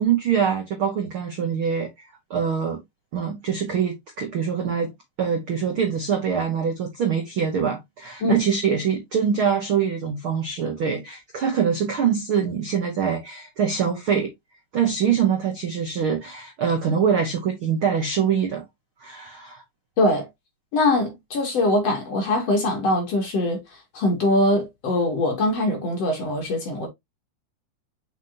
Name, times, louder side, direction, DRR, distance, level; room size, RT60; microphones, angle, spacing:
voice 1, 0.0-1.9 2.3-2.8 3.1-4.9 5.2-14.3 14.7-18.6 19.0-19.6, right 7 dB, 75° right, 1.2 m, -24 dB
voice 2, 20.0-20.3 20.7-23.6 23.9-26.9, left 1 dB, 45° left, 2.6 m, -22 dB
6.1 x 6.0 x 2.8 m
omnidirectional pair, 4.6 m